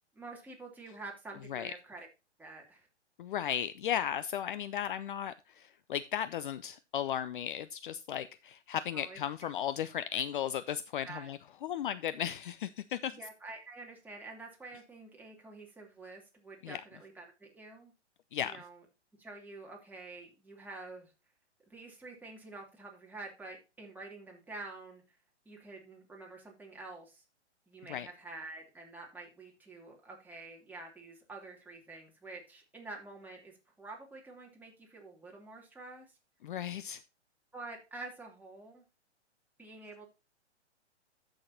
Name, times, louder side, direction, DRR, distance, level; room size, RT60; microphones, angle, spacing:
voice 1, 0.1-2.1 2.4-2.9 8.9-9.2 11.1-11.3 13.1-17.9 18.4-18.8 19.2-21.1 21.7-25.2 25.4-27.2 27.7-36.1 37.5-38.8 39.6-40.1, right 3 dB, 5° right, -1 dB, 2.8 m, -48 dB
voice 2, 3.2-13.2 16.6-16.8 18.3-18.6 27.9-28.1 36.4-37.0, left 10 dB, 45° left, 14 dB, 0.6 m, -35 dB
14.0 x 6.4 x 2.7 m, 0.29 s
figure-of-eight pair, 125°, 35 cm